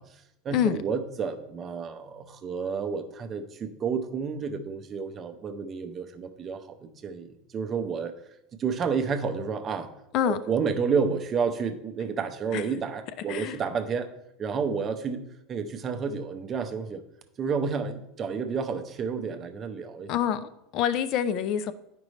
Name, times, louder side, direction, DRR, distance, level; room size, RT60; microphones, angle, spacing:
voice 1, 0.0-8.1 8.6-9.9 10.2-14.1 14.4-17.0 17.4-20.1, right 5 dB, 25° right, 8 dB, 0.6 m, -30 dB
voice 2, 20.1-21.7, left 9 dB, 45° left, 14 dB, 0.4 m, -26 dB
9.7 x 5.2 x 3.2 m, 0.82 s
supercardioid pair, 160°, 0 cm